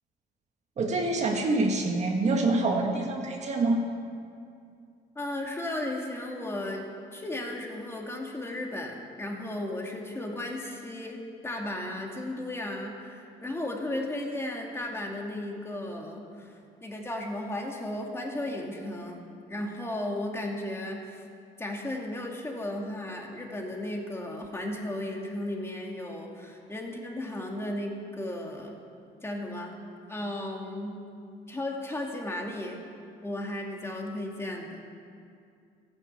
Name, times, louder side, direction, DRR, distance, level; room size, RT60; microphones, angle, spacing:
voice 1, 0.8-3.8, right 2 dB, 40° right, 2 dB, 1.7 m, -26 dB
voice 2, 5.2-16.5 16.8-19.2 19.5-21.2 21.6-28.8 29.2-29.7 30.1-31.0 31.5-32.8 33.2-34.8, left 1 dB, 15° left, 0 dB, 2.4 m, -35 dB
14.5 x 10.5 x 8.3 m, 2.4 s
cardioid pair, 110°, 17 cm